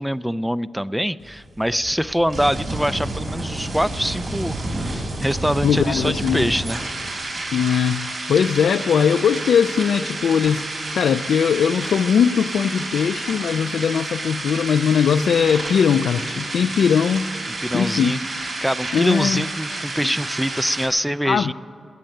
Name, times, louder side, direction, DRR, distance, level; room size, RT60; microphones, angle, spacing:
voice 1, 0.0-6.8 17.6-21.5, equal, 5° right, 16 dB, 0.4 m, -24 dB
sound 1, 1.2-20.9, right 2 dB, 70° right, 4.2 m, -30 dB
voice 2, 5.6-6.5 7.5-10.6 10.9-17.3 17.7-18.2 18.9-19.4 21.3-21.5, left 7 dB, 85° left, 8 dB, 0.4 m, -20 dB
17.5 x 10.5 x 7.7 m, 2.5 s
cardioid pair, 65°, 0 cm